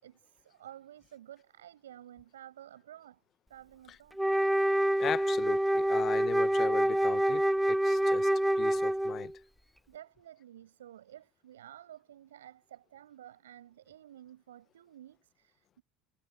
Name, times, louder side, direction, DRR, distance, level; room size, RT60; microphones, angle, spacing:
voice 1, 0.0-3.2 3.5-4.2 9.9-15.8, right 11 dB, 75° right, 5.5 m, -52 dB
Wind instrument woodwind instrument, 4.2-9.3, right 1 dB, 5° right, 0.4 m, -27 dB
voice 2, 5.0-8.3 8.6-9.3, left 10 dB, 40° left, 0.9 m, -38 dB
figure-of-eight pair, 70°, 0 cm